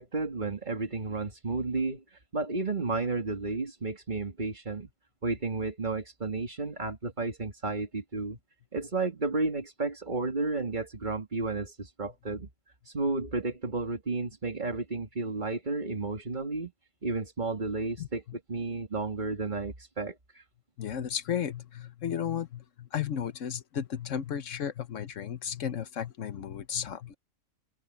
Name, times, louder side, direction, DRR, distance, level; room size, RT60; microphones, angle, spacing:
voice 1, 0.0-4.9 5.2-8.4 8.7-12.5 12.8-16.7 17.0-18.2 18.5-20.4, right 3 dB, 35° right, 2.3 m, -32 dB
voice 2, 18.0-18.4 20.8-27.1, left 9 dB, 70° left, 1.2 m, -34 dB
omnidirectional pair, 1.4 m